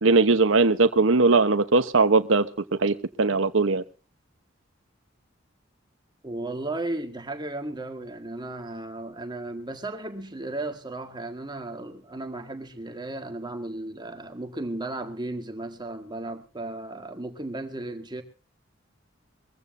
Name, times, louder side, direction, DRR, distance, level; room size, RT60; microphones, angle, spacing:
voice 1, 0.0-2.5 2.8-3.8, right 3 dB, 85° right, 1.0 m, -20 dB
voice 2, 6.2-18.2, right 2 dB, 25° right, 1.7 m, -35 dB
22.5 x 15.5 x 2.6 m
head